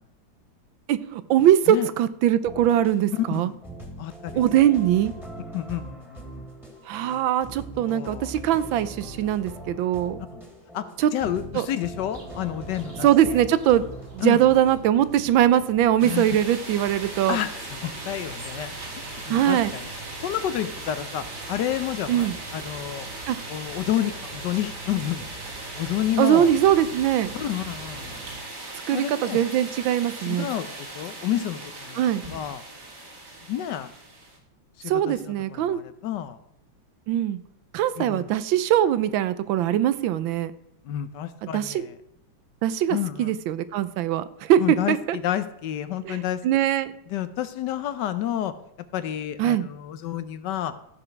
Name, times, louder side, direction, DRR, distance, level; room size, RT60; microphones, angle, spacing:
voice 1, 0.9-3.5 4.4-5.1 6.9-10.2 11.0-11.1 11.5-11.7 13.0-13.8 14.1-17.4 19.3-19.7 22.1-22.3 23.3-23.4 26.2-27.3 28.9-30.5 32.0-32.2 34.9-35.8 37.1-37.4 37.7-40.5 41.4-41.9 42.6-45.2 46.0-46.9 49.4-49.7, right 11 dB, 85° right, 14 dB, 1.4 m, -22 dB
sound 1, 2.4-14.8, right 1 dB, ahead, 1.9 m, -41 dB
voice 2, 4.0-4.4 5.5-6.4 7.7-8.3 10.3-10.4 10.7-10.9 11.1-13.3 14.2-14.4 16.0-16.3 17.3-17.5 17.8-18.7 19.1-19.9 20.2-23.1 23.5-25.2 25.8-26.5 27.3-28.2 28.9-29.4 30.2-32.6 33.5-33.9 34.8-36.4 38.0-38.3 40.8-41.9 42.9-43.3 44.6-46.4 47.1-48.5 48.9-50.7, left 11 dB, 70° left, 12 dB, 1.2 m, -30 dB
sound 2, 12.1-28.4, right 3 dB, 25° right, 1.9 m, -44 dB
sound 3, 16.0-34.4, right 2 dB, 55° right, 2.7 m, -38 dB
14.0 x 5.0 x 5.8 m, 0.78 s
omnidirectional pair, 2.1 m